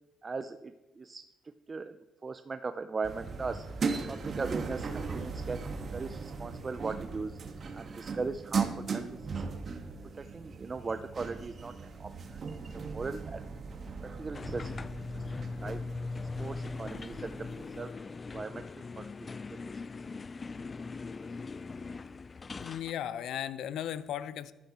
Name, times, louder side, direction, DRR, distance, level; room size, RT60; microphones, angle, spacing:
voice 1, 0.2-1.2 1.7-3.7 4.1-7.4 7.7-9.4 10.1-12.5 12.7-13.5 14.0-14.8 15.1-15.9 16.4-17.9 18.3-19.8, right 4 dB, 30° right, 10 dB, 0.6 m, -39 dB
sound 1, 3.0-17.8, right 5 dB, 45° right, 1.8 m, -38 dB
sound 2, 14.3-22.9, left 4 dB, 30° left, 0.4 m, -40 dB
voice 2, 22.6-24.5, left 10 dB, 80° left, 15 dB, 0.6 m, -36 dB
14.0 x 12.0 x 4.3 m, 1.1 s
cardioid pair, 90°, 0 cm